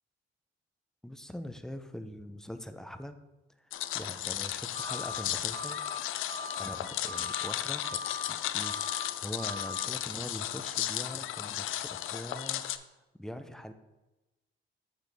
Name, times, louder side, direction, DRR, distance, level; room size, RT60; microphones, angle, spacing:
voice 1, 1.0-3.2 3.9-6.3 6.5-8.0 8.3-8.8 9.2-12.6 13.2-13.7, equal, 5° left, 8 dB, 0.4 m, -42 dB
sound 1, 3.7-12.8, left 12 dB, 75° left, 0.4 m, -35 dB
sound 2, 4.7-5.2 5.5-6.0 6.3-6.8 7.0-7.5 7.8-8.3 8.6-9.1 9.4-9.9, left 3 dB, 85° right, 1.3 m, -39 dB
7.1 x 5.9 x 3.3 m, 1.1 s
cardioid pair, 145°, 21 cm